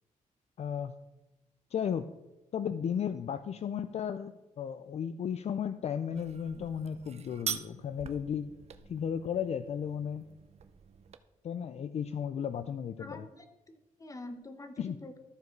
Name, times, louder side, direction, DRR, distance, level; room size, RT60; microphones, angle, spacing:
voice 1, 0.6-0.9 1.7-2.1 2.5-8.5 8.9-10.3 11.4-13.2 14.8-15.0, left 8 dB, 50° left, 11 dB, 0.4 m, -34 dB
sound 1, 6.1-11.2, right 7 dB, 50° right, 0.6 m, -43 dB
voice 2, 13.0-15.2, left 2 dB, 25° left, 8 dB, 1.0 m, -46 dB
13.5 x 4.8 x 4.6 m, 1.0 s
cardioid pair, 100°, 14 cm